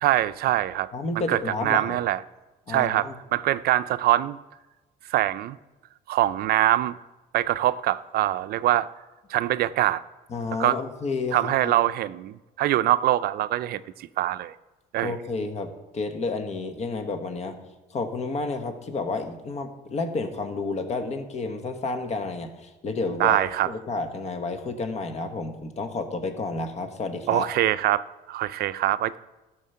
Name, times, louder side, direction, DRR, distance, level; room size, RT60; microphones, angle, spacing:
voice 1, 0.0-0.9 1.3-2.2 2.7-4.4 5.1-5.6 6.1-6.9 7.3-8.9 9.3-10.0 10.6-10.8 11.3-14.6 14.9-15.2 23.2-23.7 27.3-29.2, right 14 dB, 65° right, 15 dB, 0.4 m, -24 dB
voice 2, 0.9-2.0 2.7-3.2 10.3-11.8 15.0-17.6 17.9-23.4 23.6-27.5, left 3 dB, 40° left, 7 dB, 1.3 m, -30 dB
12.5 x 6.5 x 5.6 m, 1.1 s
cardioid pair, 110°, 17 cm